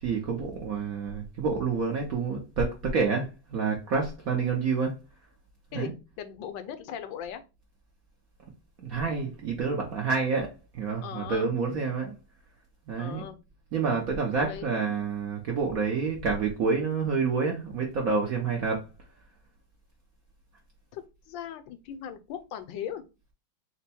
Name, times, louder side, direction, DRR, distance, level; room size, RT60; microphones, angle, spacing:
voice 1, 0.0-4.9 5.7-5.9 8.8-12.1 12.9-13.2 13.7-18.8, right 5 dB, 65° right, 0.9 m, -28 dB
voice 2, 5.7-7.4 11.0-11.5 13.0-13.4 14.3-15.1 20.9-23.0, left 9 dB, 75° left, 1.2 m, -39 dB
4.4 x 2.2 x 4.1 m
omnidirectional pair, 2.3 m